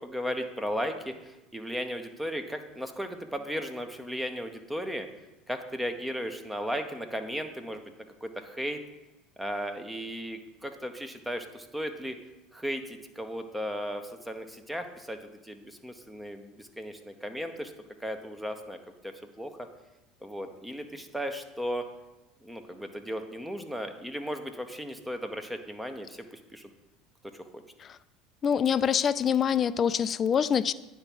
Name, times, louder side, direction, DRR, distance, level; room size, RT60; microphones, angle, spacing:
voice 1, 0.0-5.1 5.5-7.8 8.2-8.8 9.4-12.2 12.5-15.2 15.4-17.7 18.0-18.8 19.0-19.5 20.2-21.8 22.4-26.2 26.5-26.7, equal, 5° right, 7 dB, 0.9 m, -35 dB
voice 2, 28.4-30.7, left 8 dB, 40° left, 16 dB, 0.3 m, -25 dB
9.5 x 3.5 x 6.0 m, 1.0 s
hypercardioid pair, 85°, 0 cm